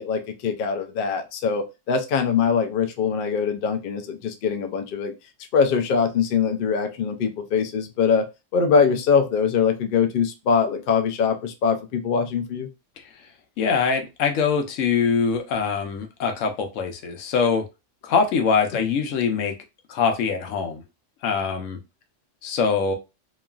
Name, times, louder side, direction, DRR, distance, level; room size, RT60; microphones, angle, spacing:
voice 1, 0.0-5.1 5.5-8.2 8.5-12.7 18.7-18.8, left 6 dB, 60° left, 6 dB, 0.6 m, -22 dB
voice 2, 13.6-17.6 18.0-19.5 19.9-20.8 21.2-21.8 22.4-23.0, left 5 dB, 85° left, 5 dB, 1.0 m, -23 dB
3.0 x 2.4 x 2.3 m, 0.26 s
omnidirectional pair, 1.3 m